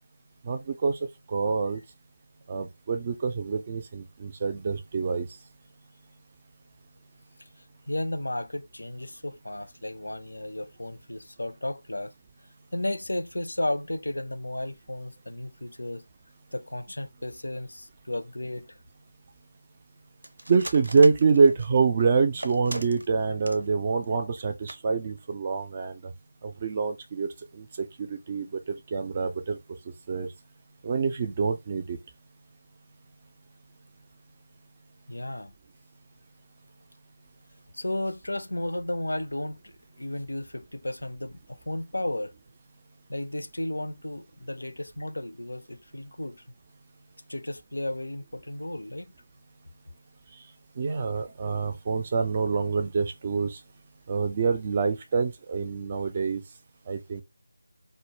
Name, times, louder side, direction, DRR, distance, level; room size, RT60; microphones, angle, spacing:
voice 1, 0.4-1.0 1.3-1.8 2.5-5.3 20.5-26.1 26.4-29.6 30.1-30.3 30.8-32.0 50.8-53.6 54.1-56.4 56.9-57.2, right 4 dB, 30° right, 0.3 m, -26 dB
voice 2, 7.9-12.1 12.7-16.0 16.5-18.8 35.1-35.5 37.7-39.7 40.0-42.3 43.1-46.4 47.3-49.1, left 1 dB, 80° left, 0.4 m, -33 dB
sound 1, 20.2-21.8 22.4-23.7 24.0-24.1 24.4-24.5 24.7-24.8 25.2-25.4, right 1 dB, 80° right, 0.5 m, -38 dB
2.1 x 2.0 x 3.1 m
figure-of-eight pair, 165°, 0 cm